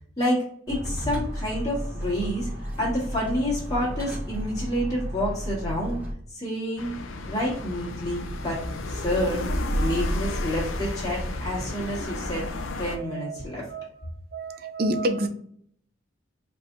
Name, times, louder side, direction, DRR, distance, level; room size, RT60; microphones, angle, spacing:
voice 1, 0.7-6.0 6.3-6.9 7.3-8.6 8.9-9.5 9.8-12.4 12.8-14.1, equal, 20° left, -6 dB, 1.7 m, -28 dB
sound 1, 0.7-6.1, equal, 10° right, 0.9 m, -33 dB
sound 2, 6.8-13.0, left 1 dB, 90° left, 0.6 m, -31 dB
voice 2, 12.8-13.9 14.3-15.3, right 1 dB, 50° right, 8 dB, 0.5 m, -29 dB
4.7 x 3.4 x 2.6 m, 0.64 s
head